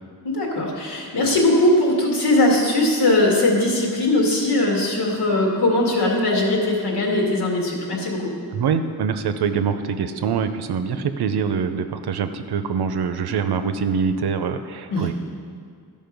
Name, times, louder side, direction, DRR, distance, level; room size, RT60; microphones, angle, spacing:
voice 1, 0.2-8.3 14.9-15.0, left 1 dB, 80° left, -2 dB, 2.1 m, -20 dB
voice 2, 8.5-15.1, right 6 dB, 75° right, 9 dB, 0.7 m, -24 dB
13.0 x 5.3 x 5.2 m, 2.2 s
wide cardioid pair, 165°, 39 cm